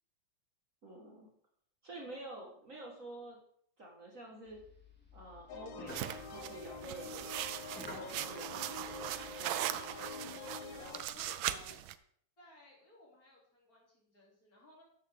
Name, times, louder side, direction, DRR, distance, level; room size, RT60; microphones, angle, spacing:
voice 1, 0.8-1.3 1.8-3.4 3.8-4.6 5.1-7.5 7.9-8.6 9.4-9.8, right 1 dB, 40° right, -1 dB, 2.1 m, -48 dB
sound 1, 4.5-9.5, left 1 dB, 5° left, 2.1 m, -53 dB
sound 2, 5.5-11.0, left 5 dB, 70° left, 1.6 m, -47 dB
sound 3, 5.9-11.9, right 12 dB, 75° right, 1.4 m, -40 dB
voice 2, 9.0-11.8 12.4-14.8, left 2 dB, 40° left, -3 dB, 3.7 m, -58 dB
13.0 x 8.6 x 3.7 m, 0.64 s
omnidirectional pair, 2.3 m